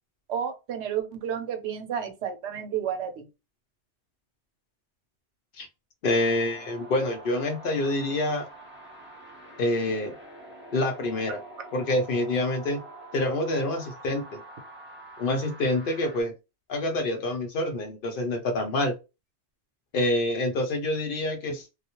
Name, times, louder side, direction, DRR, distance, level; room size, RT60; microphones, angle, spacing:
voice 1, 0.3-3.2, right 8 dB, 85° right, 0.9 m, -31 dB
voice 2, 6.0-8.5 9.6-10.1 10.7-11.4 11.7-12.8 13.1-14.4 15.2-16.3 16.7-19.0 19.9-21.7, left 1 dB, 60° left, 0.7 m, -27 dB
sound 1, 6.0-16.2, right 1 dB, 15° right, 0.6 m, -46 dB
2.3 x 2.0 x 2.8 m
omnidirectional pair, 1.1 m